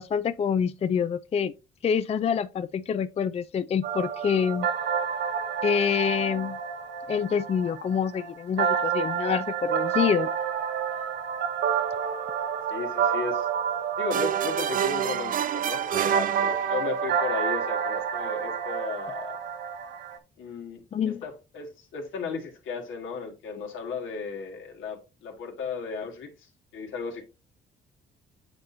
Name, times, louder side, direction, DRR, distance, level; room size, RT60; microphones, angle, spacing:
voice 1, 0.0-1.5 1.8-4.7 5.6-6.6 7.1-10.3 20.9-21.2, left 7 dB, 30° left, 0.3 m, -26 dB
sound 1, 3.8-20.2, right 7 dB, 60° right, 0.8 m, -29 dB
voice 2, 12.7-13.5 14.0-19.4 20.4-27.2, left 5 dB, 80° left, 1.8 m, -35 dB
sound 2, 14.1-17.1, right 10 dB, 45° right, 0.4 m, -28 dB
8.7 x 4.3 x 2.7 m
cardioid pair, 90°, 20 cm